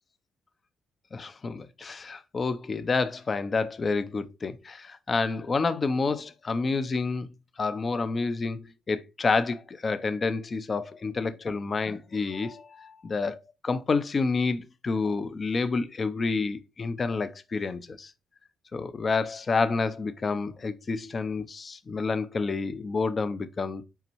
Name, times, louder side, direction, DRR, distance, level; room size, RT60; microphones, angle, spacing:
voice 1, 1.1-7.3 7.6-18.1 18.7-23.8, left 4 dB, 30° left, 0.7 m, -29 dB
5.8 x 5.2 x 4.5 m
cardioid pair, 150°, 0 cm